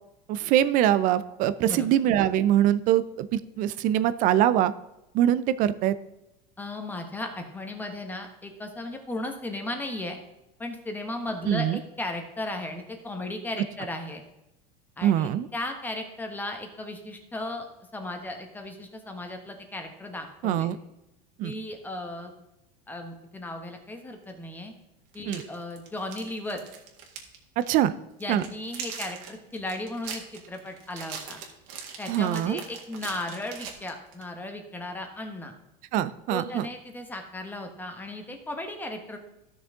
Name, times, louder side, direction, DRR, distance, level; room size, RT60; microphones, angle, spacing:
voice 1, 0.3-4.7 5.1-5.9 11.5-11.8 15.0-15.5 20.4-20.8 21.4-21.5 25.3-25.4 27.6-27.9 28.3-28.4 32.1-32.6 35.9-36.7, right 11 dB, 40° right, 15 dB, 0.5 m, -23 dB
voice 2, 6.6-10.2 10.6-14.2 15.0-17.7 17.9-20.7 21.4-22.3 22.9-24.7 25.1-26.6 28.2-31.4 32.0-35.5 36.3-39.2, left 2 dB, 10° left, 4 dB, 1.1 m, -36 dB
sound 1, 24.3-24.4 25.1-27.4 27.6-27.8 28.2-34.3, right 7 dB, 60° right, 2.0 m, -41 dB
14.0 x 6.4 x 3.6 m, 0.91 s
supercardioid pair, 150°, 21 cm